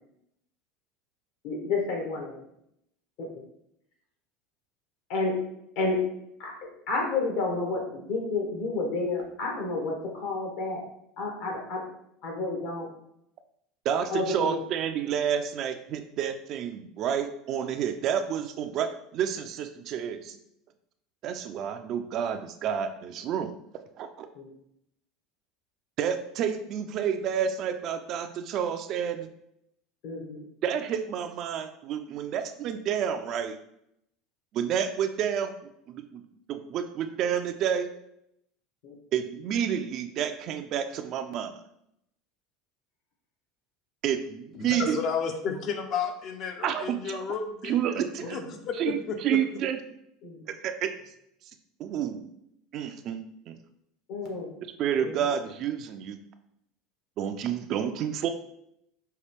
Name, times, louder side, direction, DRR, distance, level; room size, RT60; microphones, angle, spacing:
voice 1, 1.4-2.3 3.2-3.3 5.1-5.3 5.7-6.0 6.4-6.5 6.9-10.8 11.2-11.8 12.2-12.9 14.1-14.6 24.3-24.5 30.0-30.4 38.8-39.0 48.2-48.4 50.2-50.4 54.1-54.5 55.0-55.2, left 3 dB, 65° left, 0 dB, 1.5 m, -30 dB
voice 2, 13.8-20.4 21.2-23.5 24.0-24.3 26.0-29.3 30.6-33.6 34.5-36.2 36.5-37.9 39.1-41.5 44.0-45.0 46.6-47.3 47.6-48.4 48.8-49.8 50.5-50.9 51.8-52.3 52.7-53.5 54.8-56.2 57.2-58.3, right 8 dB, 55° right, 8 dB, 0.4 m, -30 dB
voice 3, 44.6-48.0 48.3-49.4, left 6 dB, 50° left, 5 dB, 0.7 m, -32 dB
5.5 x 2.4 x 3.4 m, 0.76 s
hypercardioid pair, 90°, 0 cm